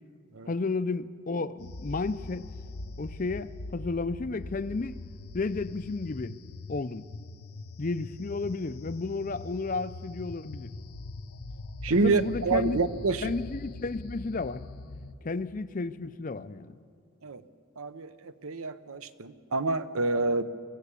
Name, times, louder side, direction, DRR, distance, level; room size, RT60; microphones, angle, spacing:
voice 1, 0.5-2.5 3.0-5.0 5.3-6.4 6.7-7.1 7.8-10.7 11.9-12.8 13.2-14.6 15.2-16.8, left 3 dB, 35° left, 0.5 m, -32 dB
sound 1, 1.6-15.1, left 2 dB, 80° left, 0.8 m, -42 dB
voice 2, 11.8-13.3 17.2-17.4 17.8-18.1 18.4-20.4, right 3 dB, 70° right, 0.8 m, -27 dB
23.5 x 15.5 x 8.4 m
head